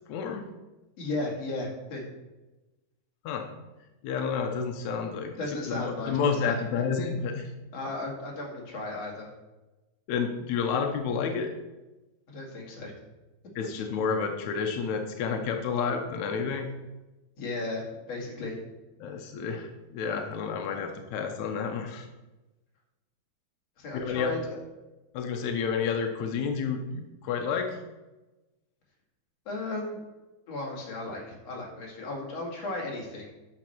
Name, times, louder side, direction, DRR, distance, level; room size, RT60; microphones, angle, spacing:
voice 1, 0.1-0.4 3.3-3.5 4.0-5.3 5.7-7.5 10.1-11.5 13.6-16.7 19.0-22.1 23.9-24.3 25.1-27.7, left 6 dB, 80° left, 4 dB, 1.6 m, -30 dB
voice 2, 1.0-2.0 5.4-6.5 7.7-9.3 12.3-12.9 17.4-18.6 23.8-24.6 29.5-30.0 30.5-33.3, left 2 dB, 45° left, -2 dB, 3.1 m, -35 dB
11.0 x 6.4 x 4.5 m, 1.1 s
omnidirectional pair, 4.4 m